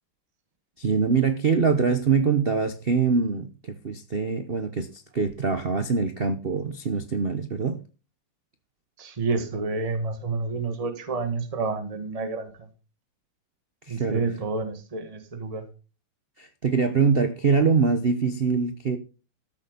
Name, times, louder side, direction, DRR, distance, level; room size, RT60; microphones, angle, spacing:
voice 1, 0.8-7.8 13.9-14.2 16.4-19.0, right 5 dB, 55° right, 0.6 m, -24 dB
voice 2, 9.0-12.7 13.9-15.6, right 3 dB, 20° right, 1.5 m, -29 dB
13.5 x 6.8 x 5.2 m
omnidirectional pair, 2.4 m